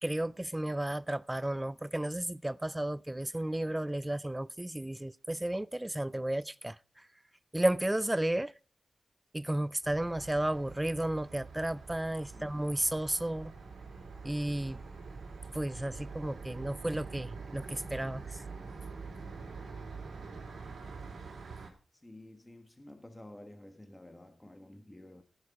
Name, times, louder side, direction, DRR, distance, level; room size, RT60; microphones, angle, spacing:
voice 1, 0.0-7.1 7.5-8.5 9.3-13.5 14.2-14.8 15.5-18.4, right 1 dB, 15° right, 0.4 m, -33 dB
sound 1, 9.8-21.7, right 4 dB, 75° right, 3.8 m, -45 dB
voice 2, 22.0-25.2, left 1 dB, 15° left, 1.6 m, -51 dB
15.5 x 6.5 x 4.8 m
cardioid pair, 70°, 0 cm